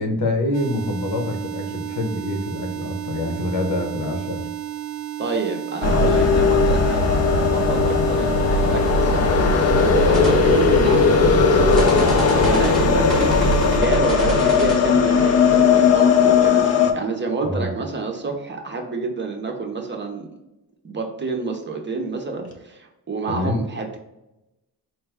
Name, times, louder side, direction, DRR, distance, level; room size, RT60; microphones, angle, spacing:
voice 1, 0.0-4.5 17.4-17.7 23.3-23.6, left 1 dB, 65° left, 4 dB, 1.0 m, -26 dB
sound 1, 0.5-13.8, right 12 dB, 75° right, 0.6 m, -32 dB
voice 2, 5.2-9.5 9.8-20.3 20.8-24.0, right 3 dB, 30° right, 2 dB, 0.6 m, -28 dB
sound 2, 5.8-16.9, left 5 dB, 40° left, 0.4 m, -17 dB
sound 3, 10.1-16.5, right 1 dB, ahead, 0.8 m, -33 dB
4.5 x 2.2 x 3.3 m, 0.93 s
cardioid pair, 135°, 38 cm